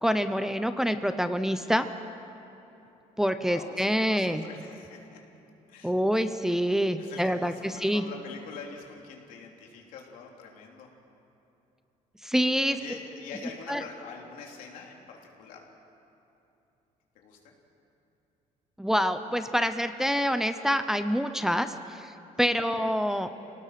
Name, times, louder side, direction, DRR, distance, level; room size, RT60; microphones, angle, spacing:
voice 1, 0.0-1.9 3.2-4.4 5.8-8.0 12.2-12.8 13.7-13.8 18.8-22.1 22.4-23.3, equal, 5° right, 9 dB, 0.6 m, -26 dB
voice 2, 3.5-5.2 5.7-6.3 6.6-10.9 12.7-15.7 17.1-17.5, left 5 dB, 85° left, 0 dB, 3.4 m, -45 dB
29.0 x 18.5 x 5.9 m, 3.0 s
cardioid pair, 150°, 14 cm